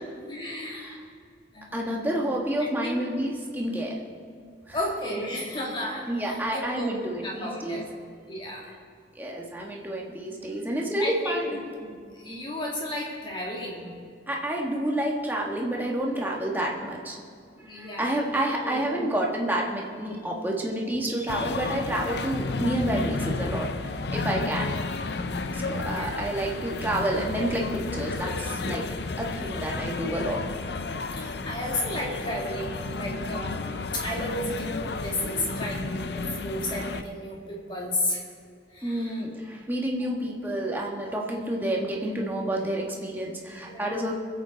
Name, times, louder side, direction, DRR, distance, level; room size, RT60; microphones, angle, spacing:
voice 1, 0.3-1.0 1.5-2.1 2.8-3.1 4.7-7.8 8.3-8.7 11.0-13.9 17.6-19.1 25.8-26.2 31.2-38.2 38.7-39.2 40.0-40.1 43.6-44.1, left 1 dB, 25° left, -3 dB, 2.3 m, -33 dB
voice 2, 1.7-4.0 4.7-4.8 5.1-5.4 6.1-7.8 9.2-11.6 14.3-17.2 17.7-24.7 25.5-28.8 29.2-30.4 38.8-44.1, right 1 dB, 10° right, -2 dB, 1.5 m, -29 dB
sound 1, 21.3-37.0, left 3 dB, 60° left, 0.6 m, -32 dB
23.0 x 8.1 x 4.0 m, 2.2 s
head